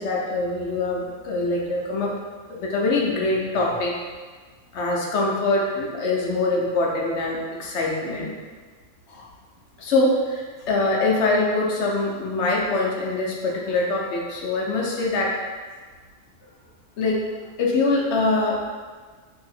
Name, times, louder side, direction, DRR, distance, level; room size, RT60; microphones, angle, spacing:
voice 1, 0.0-2.1 2.5-3.9 4.7-8.3 9.1-9.2 9.8-15.3 17.0-17.2 17.6-18.7, left 2 dB, 70° left, -2 dB, 0.9 m, -23 dB
2.8 x 2.6 x 4.1 m, 1.5 s
omnidirectional pair, 1.3 m